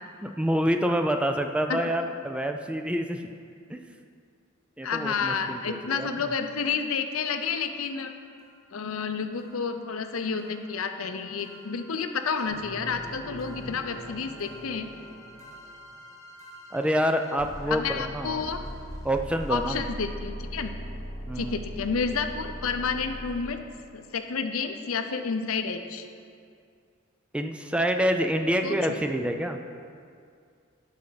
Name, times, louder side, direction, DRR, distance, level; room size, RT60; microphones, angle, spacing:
voice 1, 0.2-3.3 3.7-3.8 4.8-6.1 13.6-13.7 16.7-18.5 19.0-19.8 21.3-21.6 27.3-29.6, equal, 5° right, 6 dB, 0.3 m, -27 dB
voice 2, 4.8-8.1 8.7-14.9 17.7-18.6 19.5-20.7 21.4-23.6 23.9-26.1 28.6-29.0, left 5 dB, 75° left, 7 dB, 0.6 m, -30 dB
sound 1, 8.4-8.5 8.8-8.9 9.4-23.8, equal, 15° left, 1.1 m, -42 dB
sound 2, 12.4-16.2, right 1 dB, 80° right, 1.3 m, -44 dB
12.5 x 5.7 x 4.0 m, 2.3 s
head